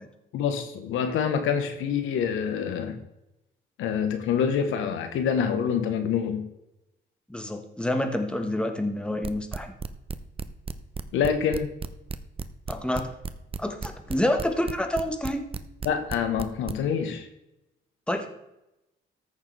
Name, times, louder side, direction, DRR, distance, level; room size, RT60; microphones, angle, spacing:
voice 1, 0.3-3.0 3.8-6.4 11.1-11.7 15.8-17.3, left 7 dB, 90° left, 7 dB, 1.2 m, -26 dB
voice 2, 7.3-9.7 12.7-13.1 13.6-15.4 18.1-18.3, left 1 dB, 5° left, 5 dB, 1.5 m, -28 dB
sound 1, 9.2-16.7, right 5 dB, 30° right, 0.7 m, -33 dB
14.0 x 6.7 x 3.4 m, 0.90 s
cardioid pair, 90°, 20 cm